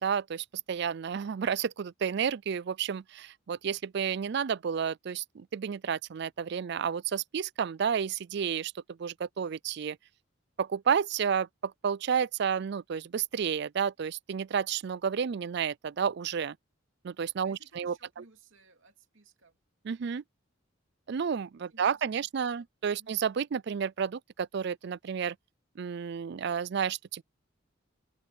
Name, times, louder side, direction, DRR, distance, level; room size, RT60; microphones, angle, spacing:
voice 1, 0.0-10.0 10.6-16.6 17.0-18.2 19.8-20.2 21.1-25.4 25.8-27.2, right 7 dB, 55° right, 0.4 m, -31 dB
voice 2, 17.4-19.6 21.7-22.7 23.0-23.2, right 3 dB, 80° right, 2.7 m, -60 dB
head